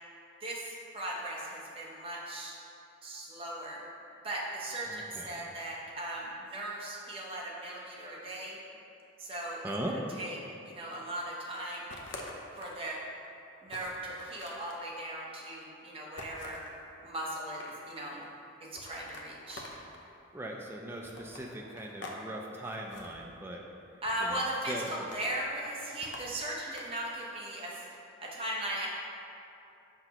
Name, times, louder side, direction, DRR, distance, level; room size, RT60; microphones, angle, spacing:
voice 1, 0.4-2.6 3.0-3.8 4.2-8.6 9.2-10.4 10.6-11.8 12.6-13.0 13.6-16.6 17.0-18.3 18.6-19.7 24.0-28.9, right 1 dB, 25° right, -4 dB, 0.8 m, -38 dB
voice 2, 4.9-5.4 9.6-10.0 20.3-23.6 24.2-25.1, right 1 dB, 10° right, 0 dB, 0.3 m, -39 dB
sound 1, 11.9-12.8 13.2-13.3 13.7-14.8 16.2-16.7 17.3-18.0 18.7-20.1 21.0-22.2 22.5-23.1 24.0-24.5 24.9-25.4 26.0-27.2, left 2 dB, 55° left, 0.6 m, -47 dB
5.8 x 5.8 x 2.9 m, 2.7 s
head